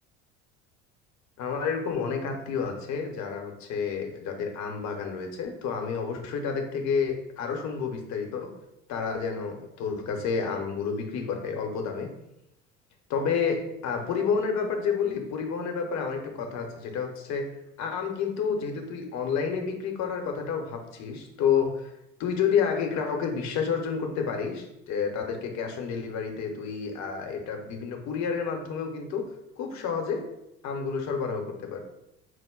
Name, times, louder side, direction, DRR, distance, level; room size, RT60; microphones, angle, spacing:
voice 1, 1.4-8.5 8.9-12.1 13.1-17.5 17.8-21.9 22.2-29.2 29.6-30.2 30.6-31.8, left 6 dB, 45° left, 3 dB, 0.8 m, -30 dB
4.7 x 2.1 x 3.7 m, 0.86 s
figure-of-eight pair, 65°, 41 cm